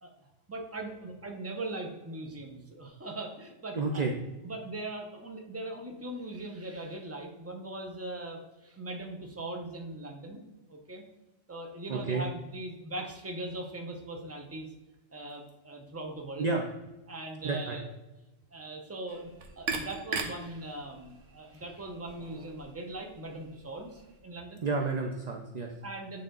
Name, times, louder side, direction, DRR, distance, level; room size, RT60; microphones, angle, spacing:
voice 1, 0.5-4.0 4.4-10.4 10.7-11.0 11.5-14.7 15.1-16.5 17.1-17.9 18.5-19.3 19.6-24.6 25.8-26.2, right 2 dB, 15° right, 2 dB, 0.7 m, -40 dB
voice 2, 3.7-4.1 11.9-12.3 16.4-16.6 17.4-17.8 24.6-25.7, right 3 dB, 50° right, 2 dB, 0.5 m, -30 dB
sound 1, 19.1-24.2, right 4 dB, 85° right, 1.2 m, -40 dB
9.2 x 3.5 x 3.8 m, 1.1 s
omnidirectional pair, 1.3 m